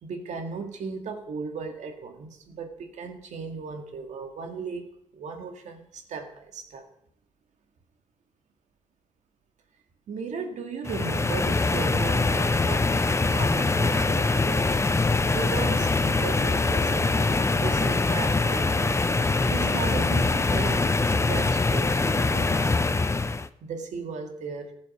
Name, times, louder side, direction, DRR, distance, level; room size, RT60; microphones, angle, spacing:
voice 1, 0.0-6.9 10.1-14.8 15.3-19.0 19.5-20.8 21.2-23.0 23.6-24.7, right 5 dB, 70° right, 5 dB, 2.1 m, -36 dB
sound 1, 10.8-23.5, left 3 dB, 20° left, 0.7 m, -23 dB
15.0 x 7.6 x 6.2 m, 0.69 s
supercardioid pair, 60°, 13 cm